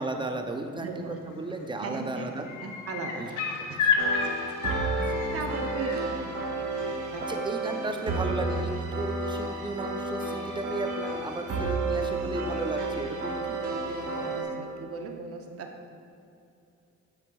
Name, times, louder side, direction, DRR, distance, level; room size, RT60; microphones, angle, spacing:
voice 1, 0.0-0.9 1.3-2.5 3.2-3.3 3.6-3.9 4.8-5.0 7.3-13.6, right 2 dB, 15° right, 5 dB, 0.5 m, -34 dB
voice 2, 0.7-1.2 1.7-2.3 2.6-3.8 4.3-4.4 5.3-7.4 12.7-12.9 13.6-15.9, right 4 dB, 50° right, 4 dB, 0.7 m, -38 dB
sound 1, 1.3-1.6 1.9-6.0 7.6-7.7, left 6 dB, 80° left, 0.8 m, -30 dB
sound 2, 4.0-14.4, right 2 dB, 70° right, 1.0 m, -31 dB
7.6 x 6.1 x 2.3 m, 2.6 s
cardioid pair, 90°, 30 cm